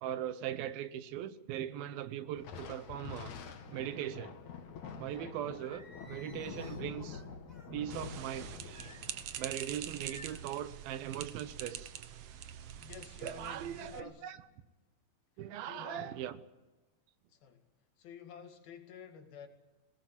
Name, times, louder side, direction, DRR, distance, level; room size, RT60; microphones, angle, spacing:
voice 1, 0.0-3.3 3.7-4.4 5.0-7.2 7.7-8.9 9.4-11.9 13.2-14.4 15.4-16.3, right 11 dB, 90° right, 2.9 m, -40 dB
Thunder, 2.4-11.1, left 6 dB, 60° left, 2.9 m, -47 dB
voice 2, 4.9-5.4 12.8-14.3 15.4-16.2 17.3-17.7 18.0-19.5, left 7 dB, 90° left, 4.0 m, -51 dB
Singing, 5.6-7.7 8.7-9.6 10.0-10.6, left 3 dB, 15° left, 2.2 m, -56 dB
sound 1, 7.9-14.0, right 10 dB, 70° right, 1.5 m, -45 dB
19.5 x 18.5 x 9.6 m
omnidirectional pair, 4.1 m